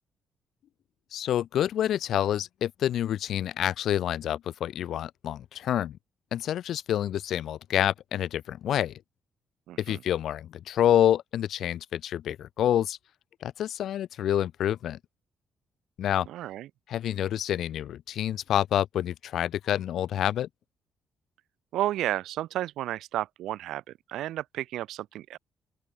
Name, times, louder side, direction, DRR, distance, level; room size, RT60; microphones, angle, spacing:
voice 1, 1.1-6.0 6.3-9.0 9.8-13.0 13.4-15.0 16.0-16.3 16.9-20.5, left 11 dB, 70° left, 2.9 m, -27 dB
voice 2, 9.7-10.0 16.3-16.7 21.7-23.8 24.1-25.4, right 13 dB, 85° right, 1.8 m, -32 dB
open air
cardioid pair, 90°, 0 cm